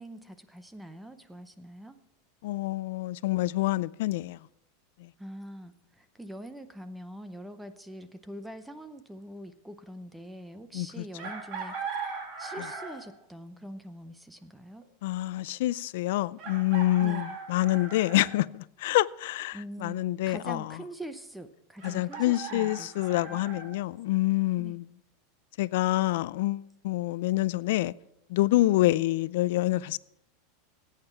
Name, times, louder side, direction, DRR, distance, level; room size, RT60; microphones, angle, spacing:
voice 1, 0.0-2.0 5.2-11.8 12.4-14.8 17.0-17.4 19.5-22.9 23.2-23.4 24.6-24.8, right 1 dB, 5° right, 0.6 m, -43 dB
voice 2, 2.4-4.4 5.0-5.1 10.7-11.0 15.0-20.8 21.8-24.9 25.6-27.9 28.3-30.0, left 17 dB, 65° left, 0.4 m, -27 dB
Chicken rooster, 11.2-13.1 14.8-14.9 16.4-18.3 21.8-23.7, right 5 dB, 40° right, 2.6 m, -39 dB
16.5 x 8.9 x 4.5 m
supercardioid pair, 155°, 0 cm